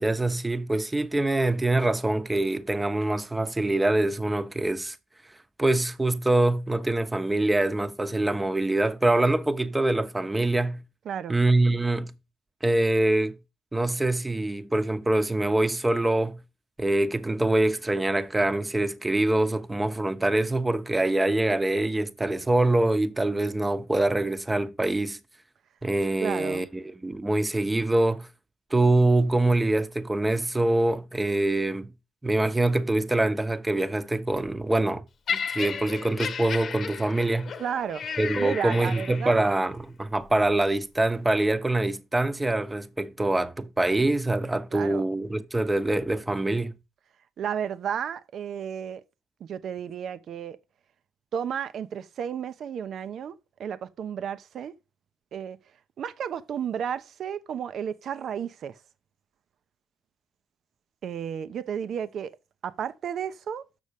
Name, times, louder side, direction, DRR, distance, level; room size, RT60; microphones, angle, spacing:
voice 1, 0.0-5.0 5.6-10.8 11.3-12.1 12.6-13.4 13.7-16.4 16.8-25.2 25.8-28.3 28.7-31.9 32.2-35.0 35.3-37.5 38.2-46.7, right 2 dB, 15° right, 1.0 m, -24 dB
voice 2, 11.1-11.4 26.2-26.7 37.6-38.0 38.4-39.6 44.7-45.1 47.4-49.0 49.4-50.6 51.3-53.3 53.6-54.7 55.3-55.6 56.0-58.8 61.0-62.3 62.6-63.6, right 8 dB, 60° right, 0.7 m, -32 dB
Laughter, 35.3-39.5 40.3-40.5, left 6 dB, 50° left, 1.0 m, -34 dB
6.8 x 6.2 x 5.2 m
hypercardioid pair, 50°, 0 cm